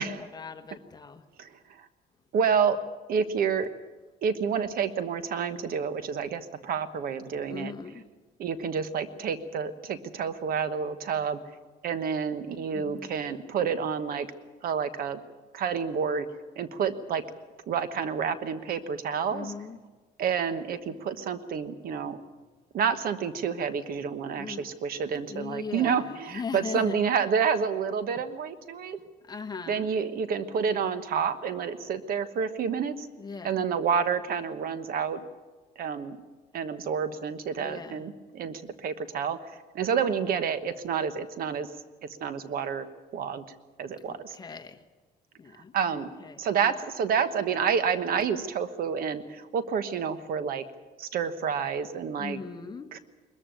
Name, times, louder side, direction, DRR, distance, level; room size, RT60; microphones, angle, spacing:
voice 1, 0.0-1.2 7.4-8.0 12.7-13.1 19.3-19.8 24.3-24.7 25.3-27.0 29.2-29.9 33.2-33.6 37.6-38.0 44.1-44.8 45.4-46.4 52.1-52.9, left 5 dB, 25° left, 7 dB, 1.3 m, -39 dB
voice 2, 2.3-2.8 3.1-3.7 4.2-7.7 8.4-11.4 11.8-14.3 14.6-15.2 15.5-16.3 16.6-17.2 17.7-19.5 20.2-22.2 22.7-29.0 29.7-33.1 33.4-35.2 35.8-36.2 36.5-41.7 42.0-42.9 43.1-43.4 43.8-44.3 45.7-46.1 46.4-50.6 51.0-52.4 52.9-53.0, right 6 dB, 60° right, 12 dB, 1.3 m, -29 dB
21.0 x 14.0 x 9.1 m, 1.3 s
cardioid pair, 110°, 17 cm